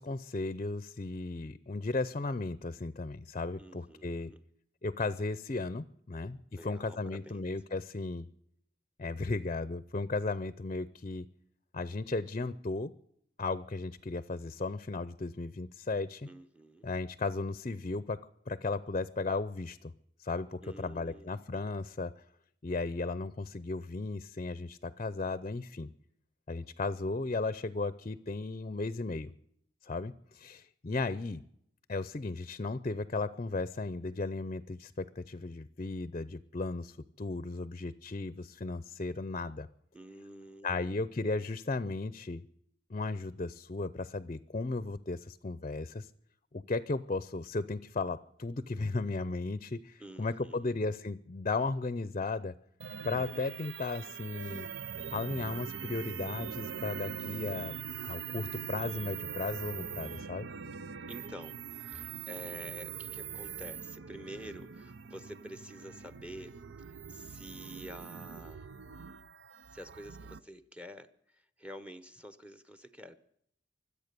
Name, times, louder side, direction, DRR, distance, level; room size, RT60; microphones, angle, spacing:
voice 1, 0.0-4.3 4.8-8.3 9.0-11.3 11.7-12.9 13.4-16.3 16.8-18.2 18.5-19.9 20.2-22.1 22.6-25.9 26.5-29.3 29.8-31.4 31.9-39.7 40.6-42.4 42.9-46.1 46.5-52.5 53.0-54.7 55.1-60.5, left 3 dB, 35° left, 15 dB, 0.5 m, -35 dB
voice 2, 3.6-4.4 6.6-7.5 16.3-16.9 20.6-21.4 39.9-41.0 50.0-50.7 61.1-61.6 61.9-66.6 67.1-68.6 69.7-71.1 71.3-73.2, equal, 5° right, 12 dB, 0.8 m, -48 dB
sound 1, 52.8-70.4, right 7 dB, 85° right, 0.6 m, -42 dB
24.5 x 8.5 x 6.8 m, 0.71 s
head